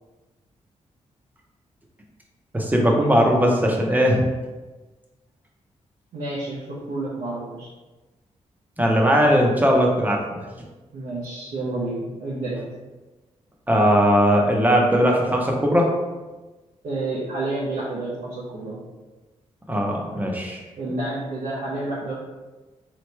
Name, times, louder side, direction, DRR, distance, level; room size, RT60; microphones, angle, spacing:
voice 1, 2.5-4.3 8.8-10.4 13.7-15.9 19.7-20.6, equal, 15° right, 0 dB, 0.7 m, -19 dB
voice 2, 6.1-7.7 10.9-12.6 16.8-18.8 20.8-22.1, right 2 dB, 90° right, -7 dB, 0.9 m, -29 dB
4.0 x 3.1 x 3.2 m, 1.2 s
wide cardioid pair, 120°, 12 cm